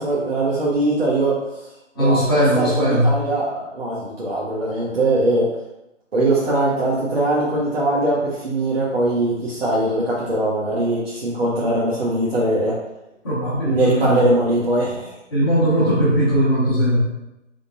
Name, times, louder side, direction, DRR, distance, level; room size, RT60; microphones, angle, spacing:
voice 1, 0.0-1.3 2.0-5.5 6.1-12.8 13.6-15.1, right 2 dB, 50° right, -7 dB, 0.9 m, -21 dB
voice 2, 1.9-3.1 13.2-14.2 15.3-17.0, right 1 dB, 20° left, -10 dB, 1.3 m, -19 dB
3.7 x 3.7 x 2.7 m, 0.94 s
figure-of-eight pair, 165°, 38 cm